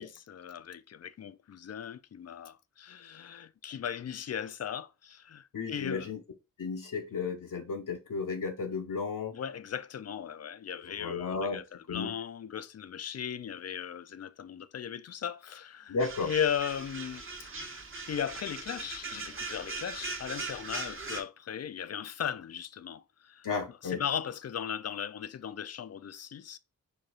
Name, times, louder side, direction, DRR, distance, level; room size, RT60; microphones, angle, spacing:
voice 1, 0.0-6.1 9.3-16.0 16.2-17.8 18.1-23.5 23.8-26.6, left 8 dB, 50° left, 0.5 m, -37 dB
voice 2, 5.5-6.2 6.6-9.3 10.8-11.6 11.9-12.1 15.9-16.3 23.4-24.0, left 4 dB, 70° left, 0.9 m, -34 dB
sound 1, 16.0-21.2, right 4 dB, 40° right, 1.0 m, -40 dB
5.0 x 2.3 x 3.9 m
cardioid pair, 55°, 34 cm